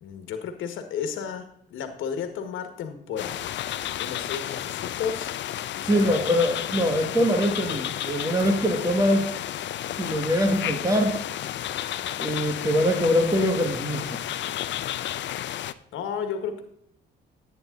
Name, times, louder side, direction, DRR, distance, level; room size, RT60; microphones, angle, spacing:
voice 1, 0.0-3.4 4.0-5.3 5.7-6.3 7.0-7.1 15.9-16.6, left 7 dB, 85° left, 7 dB, 1.7 m, -33 dB
sound 1, 3.2-15.7, left 11 dB, 65° left, 0.6 m, -32 dB
voice 2, 5.9-9.3 10.0-11.2 12.2-14.2, equal, 15° right, 3 dB, 2.1 m, -23 dB
11.0 x 9.0 x 3.9 m, 0.72 s
cardioid pair, 90°, 20 cm